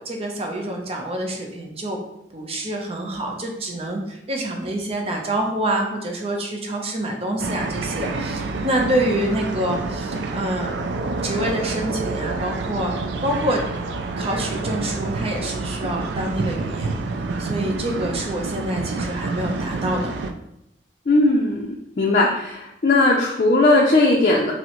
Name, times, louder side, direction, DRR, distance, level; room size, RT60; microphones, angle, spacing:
voice 1, 0.0-2.0 2.3-10.8 11.2-13.0 13.2-13.6 14.2-16.9 17.4-20.1, right 1 dB, 35° right, 1 dB, 0.7 m, -26 dB
sound 1, 7.4-20.3, right 3 dB, 70° right, 0.3 m, -28 dB
voice 2, 21.1-24.5, left 2 dB, 45° left, -2 dB, 0.5 m, -18 dB
5.9 x 2.1 x 2.9 m, 0.84 s
head